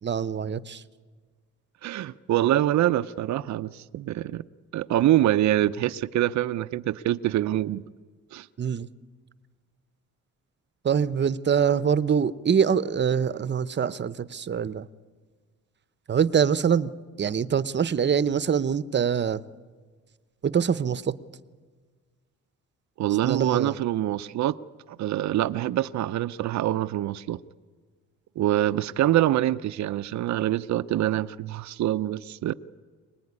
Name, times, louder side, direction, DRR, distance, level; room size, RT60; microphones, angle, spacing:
voice 1, 0.0-0.8 8.6-8.9 10.8-14.9 16.1-16.9 17.2-19.4 20.4-21.1 23.2-23.8, right 7 dB, 35° right, 16 dB, 0.9 m, -24 dB
voice 2, 1.8-4.4 4.7-7.8 8.3-8.5 23.0-24.6 24.9-27.4 28.4-32.5, right 13 dB, 65° right, 13 dB, 0.7 m, -25 dB
24.0 x 20.0 x 9.7 m, 1.5 s
cardioid pair, 90°, 30 cm